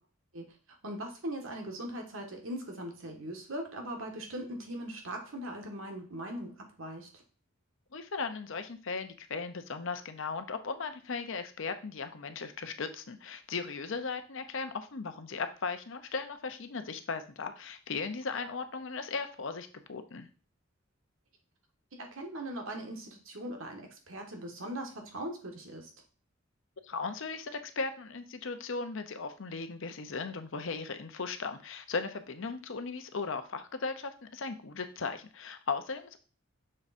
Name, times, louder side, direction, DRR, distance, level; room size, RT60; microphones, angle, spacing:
voice 1, 0.8-7.1 18.3-18.5 21.9-25.9, right 1 dB, 80° right, 3 dB, 1.5 m, -40 dB
voice 2, 7.9-20.3 26.8-36.2, left 4 dB, 70° left, 9 dB, 0.7 m, -37 dB
6.4 x 3.6 x 4.2 m, 0.39 s
head